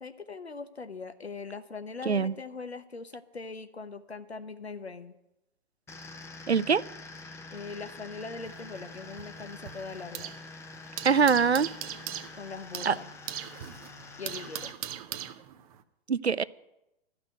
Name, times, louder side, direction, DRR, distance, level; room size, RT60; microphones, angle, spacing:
voice 1, 0.0-5.1 7.5-10.3 12.3-13.1 14.2-14.7, left 4 dB, 80° left, 9 dB, 0.9 m, -41 dB
sound 1, 5.9-14.7, left 3 dB, 10° left, 0.7 m, -46 dB
voice 2, 6.5-6.8 11.0-11.7 12.9-13.0 16.1-16.4, right 6 dB, 90° right, 18 dB, 0.5 m, -23 dB
sound 2, 8.4-10.5 10.7-15.8, right 11 dB, 35° right, 0.7 m, -40 dB
12.5 x 5.9 x 9.2 m, 0.91 s
figure-of-eight pair, 110°, 31 cm